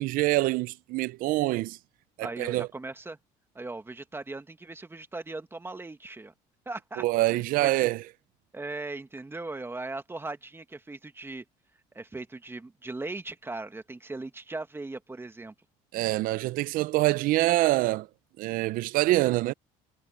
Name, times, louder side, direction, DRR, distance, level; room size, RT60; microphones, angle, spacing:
voice 1, 0.0-1.8 2.2-2.7 7.0-8.0 15.9-18.1 18.4-19.5, right 18 dB, 70° right, 0.6 m, -25 dB
voice 2, 2.2-3.2 3.6-6.3 6.7-7.9 8.5-11.4 11.9-15.5, right 2 dB, 15° right, 2.0 m, -39 dB
supercardioid pair, 90°, 15 cm